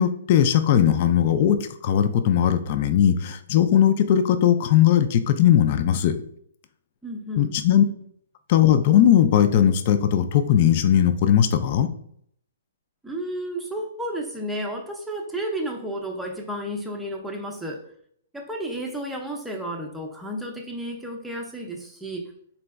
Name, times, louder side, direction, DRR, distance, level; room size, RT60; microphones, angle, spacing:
voice 1, 0.0-6.2 7.4-7.8 8.5-11.9, left 10 dB, 45° left, 10 dB, 0.4 m, -19 dB
voice 2, 7.0-7.6 13.0-17.9 18.3-22.3, right 1 dB, ahead, 0 dB, 0.6 m, -32 dB
4.0 x 3.3 x 2.3 m, 0.65 s
hypercardioid pair, 140°, 0 cm